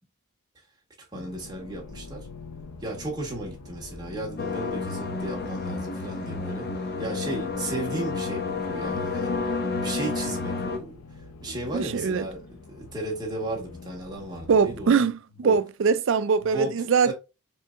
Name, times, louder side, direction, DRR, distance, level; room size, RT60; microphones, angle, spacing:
sound 1, 1.1-14.9, left 3 dB, 80° left, 0.6 m, -45 dB
voice 1, 1.1-2.3 2.8-9.3 9.8-11.0 11.4-15.0 15.4-15.6 16.5-16.7 17.0-17.1, right 2 dB, 20° right, 1.4 m, -35 dB
sound 2, 4.4-10.8, left 3 dB, 45° left, 0.8 m, -30 dB
voice 2, 11.7-12.2 14.5-17.1, right 5 dB, 60° right, 0.4 m, -22 dB
4.5 x 3.4 x 2.5 m
head